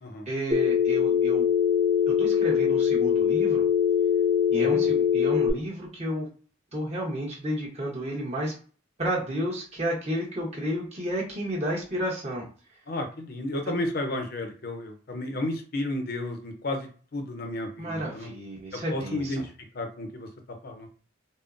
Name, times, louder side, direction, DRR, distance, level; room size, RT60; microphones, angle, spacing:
voice 1, 0.3-1.5 2.1-3.6 4.5-6.3 6.7-8.5 9.0-12.4 17.8-19.3, equal, 35° right, -4 dB, 1.0 m, -31 dB
Telephone, 0.5-5.5, left 8 dB, 5° right, 0.7 m, -22 dB
voice 2, 4.5-4.9 12.9-18.3 18.7-20.3 20.6-20.9, left 1 dB, 50° left, 5 dB, 0.5 m, -32 dB
3.6 x 2.0 x 2.5 m, 0.39 s
head